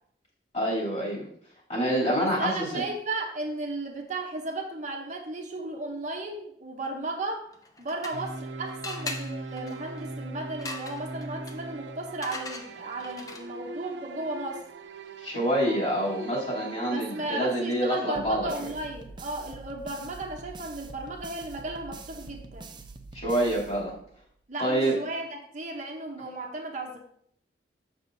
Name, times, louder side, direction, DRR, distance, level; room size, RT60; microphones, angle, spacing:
voice 1, 0.5-1.2 1.7-2.8 15.2-18.5 23.1-23.9 24.6-24.9, right 1 dB, 40° left, -6 dB, 3.0 m, -27 dB
voice 2, 2.2-7.5 7.8-14.6 16.9-22.7 24.5-27.0, right 2 dB, 45° right, 2 dB, 0.8 m, -35 dB
sound 1, 7.5-8.5 8.8-13.7, left 3 dB, 20° left, 0.5 m, -41 dB
sound 2, 8.1-17.4, right 3 dB, 80° right, 0.5 m, -40 dB
sound 3, 18.1-24.3, right 3 dB, 25° right, 0.5 m, -45 dB
7.4 x 6.2 x 2.6 m, 0.67 s
head